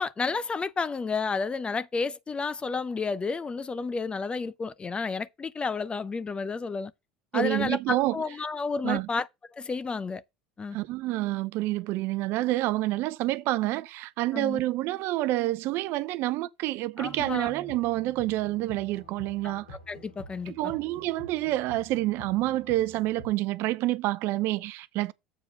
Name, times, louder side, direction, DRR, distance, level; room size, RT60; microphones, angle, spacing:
voice 1, 0.0-6.9 7.3-9.3 9.5-10.2 10.6-10.8 14.3-14.6 17.0-17.5 19.4-19.5 19.9-20.5, left 4 dB, 25° left, 0.6 m, -31 dB
voice 2, 7.3-8.2 8.8-9.1 10.7-19.7 20.5-25.1, right 17 dB, 60° right, 0.6 m, -28 dB
sound 1, 17.0-23.3, equal, 85° left, 2.8 m, -47 dB
7.5 x 4.7 x 5.1 m
hypercardioid pair, 75°, 5 cm